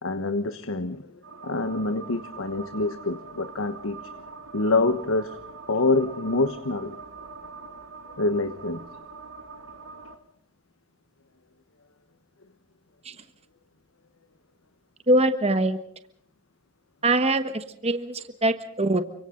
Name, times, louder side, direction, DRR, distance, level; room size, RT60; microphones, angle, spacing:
voice 1, 0.0-1.1 1.4-4.0 4.5-5.4 5.7-7.0 8.2-8.8, left 2 dB, 85° left, 10 dB, 1.2 m, -26 dB
sound 1, 1.2-10.2, right 4 dB, 85° right, 2.3 m, -43 dB
voice 2, 15.1-15.8 17.0-19.0, right 1 dB, 30° right, 9 dB, 1.3 m, -23 dB
29.5 x 25.5 x 3.9 m, 0.66 s
head